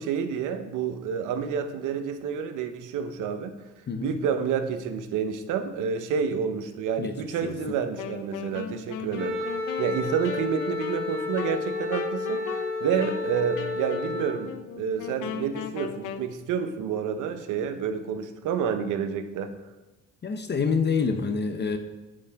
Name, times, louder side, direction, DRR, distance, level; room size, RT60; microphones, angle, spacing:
voice 1, 0.0-3.5 4.0-9.5 9.8-19.5, right 7 dB, 90° right, 10 dB, 0.7 m, -29 dB
voice 2, 3.9-4.2 7.0-7.6 20.2-21.8, left 5 dB, 35° left, 7 dB, 0.7 m, -27 dB
Wind instrument woodwind instrument, 8.0-16.3, left 7 dB, 90° left, 0.6 m, -38 dB
Wind instrument woodwind instrument 2, 9.2-14.3, left 3 dB, 40° right, 2.4 m, -31 dB
8.2 x 5.3 x 3.4 m, 1.1 s
cardioid pair, 90°, 30 cm